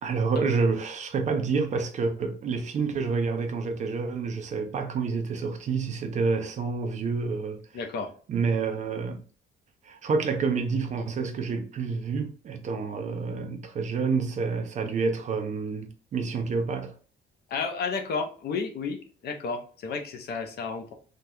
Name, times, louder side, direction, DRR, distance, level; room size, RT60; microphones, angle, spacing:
voice 1, 0.0-7.6 8.3-9.2 9.8-16.9, right 4 dB, 35° right, 0.4 m, -28 dB
voice 2, 7.7-8.1 17.5-20.9, left 5 dB, 50° left, 0.6 m, -32 dB
3.4 x 2.3 x 2.6 m
cardioid pair, 175°, 21 cm